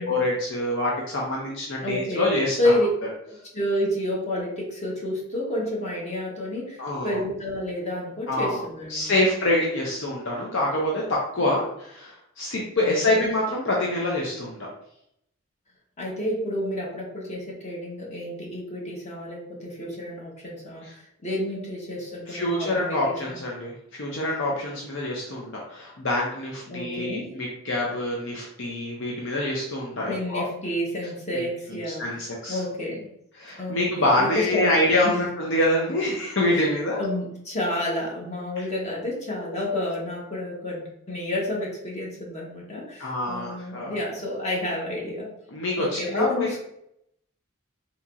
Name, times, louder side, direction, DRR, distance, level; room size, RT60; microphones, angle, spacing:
voice 1, 0.0-2.7 6.8-7.2 8.3-8.6 8.9-14.7 20.8-20.9 22.3-30.4 31.3-31.4 31.9-32.6 33.4-37.0 39.4-39.5 43.0-44.0 45.5-46.6, left 1 dB, 70° left, -3 dB, 0.7 m, -26 dB
voice 2, 1.8-2.3 2.6-2.9 3.3-9.1 12.8-13.3 16.0-23.4 26.7-27.4 30.1-32.2 32.5-33.1 33.6-34.8 35.0-35.2 36.5-36.6 37.0-45.3 45.8-46.6, left 1 dB, 35° left, -3 dB, 1.0 m, -30 dB
4.1 x 2.9 x 2.4 m, 0.75 s
head